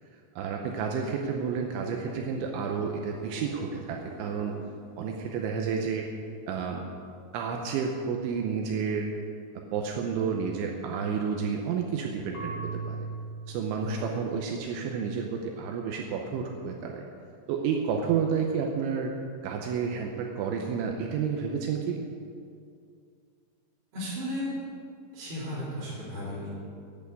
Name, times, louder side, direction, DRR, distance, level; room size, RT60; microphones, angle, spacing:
voice 1, 0.4-4.6 5.0-6.1 6.5-6.8 7.3-9.1 9.6-13.1 13.5-17.1 17.5-19.1 19.4-22.0, right 6 dB, 80° right, 2 dB, 2.9 m, -30 dB
sound 1, 0.9-6.6 6.9-7.5 14.6-14.7, left 1 dB, 80° left, 4.7 m, -50 dB
Marimba xylophone / Wood, 12.3-15.2, right 4 dB, 50° left, 3.5 m, -39 dB
voice 2, 13.5-14.1 23.9-24.5 25.1-26.5, left 1 dB, 30° right, -12 dB, 4.1 m, -35 dB
11.0 x 8.9 x 8.2 m, 2.3 s
omnidirectional pair, 5.9 m